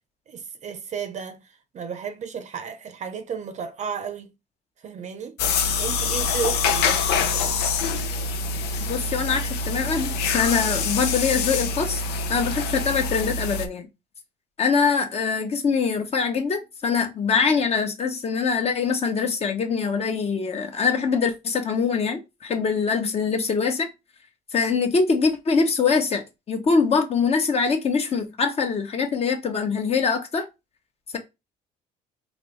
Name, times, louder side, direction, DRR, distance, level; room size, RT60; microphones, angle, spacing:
voice 1, 0.3-4.3 4.8-5.4 5.7-7.5, right 7 dB, 45° right, 0.7 m, -33 dB
sound 1, 5.4-13.7, left 4 dB, 80° left, 0.6 m, -25 dB
voice 2, 8.9-12.0 12.3-13.9 14.6-23.9 24.5-30.5, left 5 dB, 35° left, 0.9 m, -23 dB
4.2 x 2.7 x 3.2 m
cardioid pair, 110°, 17 cm